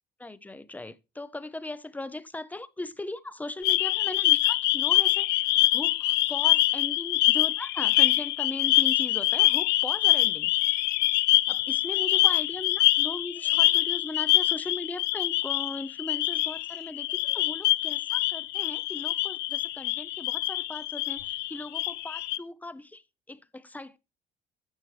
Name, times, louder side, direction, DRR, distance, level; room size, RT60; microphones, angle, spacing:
voice 1, 0.2-10.8 11.5-23.0 23.3-24.0, left 2 dB, 10° left, 0.6 m, -38 dB
sound 1, 3.6-22.4, left 17 dB, 85° left, 0.5 m, -25 dB
11.5 x 7.3 x 3.3 m
cardioid pair, 110°, 17 cm